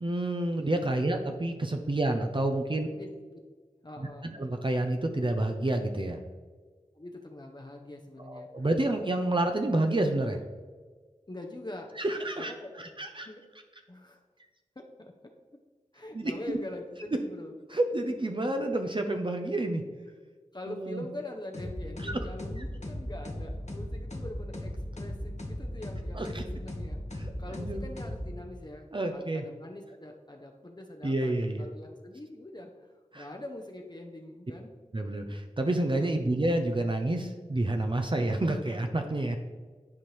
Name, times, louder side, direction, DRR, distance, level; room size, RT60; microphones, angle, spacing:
voice 1, 0.0-2.9 4.2-6.2 8.2-10.4 12.0-12.5 12.8-13.3 16.1-16.6 17.7-19.8 20.7-21.0 22.0-22.2 26.2-26.4 27.1-27.8 28.9-29.4 31.0-31.6 33.1-33.3 34.9-39.4, right 1 dB, 40° right, 4 dB, 0.6 m, -29 dB
voice 2, 3.8-4.3 6.9-8.7 11.3-13.4 13.9-14.2 14.8-15.3 15.9-17.5 20.5-27.0 27.4-34.7 35.9-36.2, left 1 dB, 35° left, 2 dB, 0.7 m, -44 dB
sound 1, 21.5-28.7, left 1 dB, 60° left, 1.3 m, -37 dB
10.5 x 4.4 x 3.2 m, 1.5 s
wide cardioid pair, 50°, 13 cm